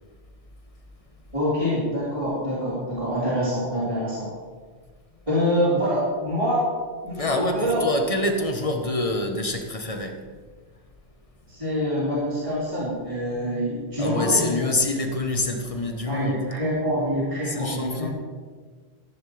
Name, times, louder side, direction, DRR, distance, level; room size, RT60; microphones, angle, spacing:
voice 1, 1.3-4.3 5.3-6.6 7.0-7.8 11.5-14.7 16.1-18.1, equal, 30° right, 3.7 m, -25 dB
voice 2, 7.1-10.5 14.0-16.4 17.4-18.1, left 2 dB, 35° left, 1.2 m, -26 dB
14.0 x 11.0 x 3.4 m
omnidirectional pair, 1.1 m